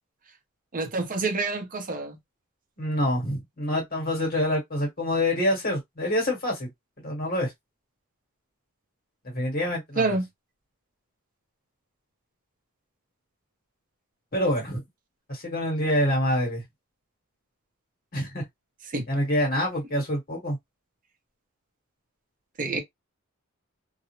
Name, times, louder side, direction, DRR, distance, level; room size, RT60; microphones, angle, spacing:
voice 1, 0.7-2.2 10.0-10.3 18.9-19.1 22.6-22.8, right 3 dB, 40° right, 0.6 m, -27 dB
voice 2, 2.8-6.7 7.0-7.5 9.3-10.2 14.3-14.8 15.3-16.6 18.1-18.4 19.1-20.6, left 1 dB, 45° left, 1.2 m, -26 dB
2.4 x 2.0 x 2.9 m
head